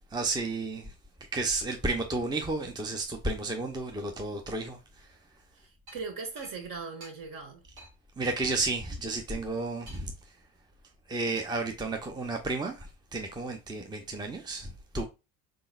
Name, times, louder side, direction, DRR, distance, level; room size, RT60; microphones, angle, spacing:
voice 1, 0.1-0.9 1.3-5.1 8.2-10.1 11.1-15.0, right 3 dB, 10° right, 0.7 m, -32 dB
voice 2, 5.5-7.6, right 4 dB, 50° right, 1.6 m, -39 dB
sound 1, 5.9-6.0 6.4-6.5 7.0-7.1 7.8-7.9 8.4-8.5 9.9-10.2 11.3-11.7, right 2 dB, 85° right, 1.8 m, -49 dB
3.9 x 3.8 x 2.4 m
hypercardioid pair, 60°, 43 cm